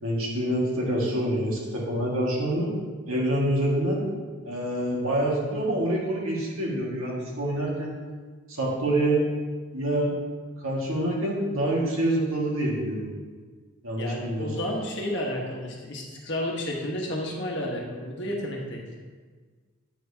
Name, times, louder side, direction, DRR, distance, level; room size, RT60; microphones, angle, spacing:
voice 1, 0.0-2.7 3.1-4.0 4.4-8.0 8.5-9.3 9.7-10.1 10.6-13.1 13.8-14.5, right 1 dB, 75° right, -4 dB, 1.7 m, -26 dB
voice 2, 13.9-18.8, left 1 dB, 55° left, -1 dB, 1.3 m, -31 dB
9.1 x 6.6 x 2.8 m, 1.5 s
head